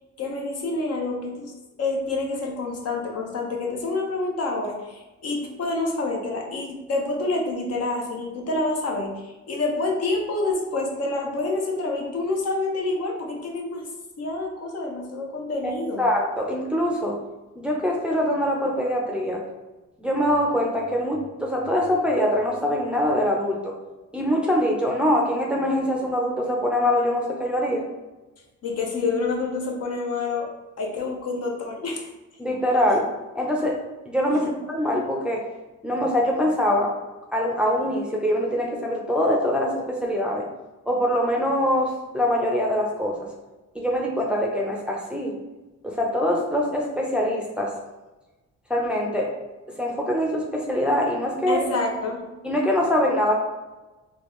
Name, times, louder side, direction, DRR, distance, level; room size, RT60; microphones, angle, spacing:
voice 1, 0.2-1.5 1.8-13.9 14.2-16.1 28.6-30.5 30.8-32.1 34.3-34.5 51.5-52.3, left 3 dB, 55° left, 0 dB, 0.8 m, -27 dB
voice 2, 16.0-17.2 17.6-19.4 20.0-23.8 24.1-27.8 32.4-33.1 33.3-35.5 35.8-36.9 37.3-40.5 40.9-43.3 43.7-45.3 45.8-47.8 48.7-49.3 49.8-51.6 52.4-53.3, equal, 5° right, -2 dB, 0.5 m, -23 dB
3.4 x 2.2 x 3.1 m, 1.1 s
cardioid pair, 90°, 30 cm